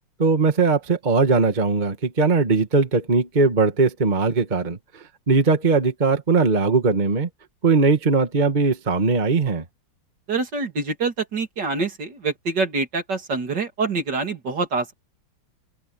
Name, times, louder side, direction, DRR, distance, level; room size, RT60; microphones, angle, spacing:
voice 1, 0.2-7.3 7.6-9.6, right 4 dB, 25° right, 1.6 m, -20 dB
voice 2, 10.3-14.9, right 4 dB, 60° right, 3.4 m, -25 dB
open air
omnidirectional pair, 2.1 m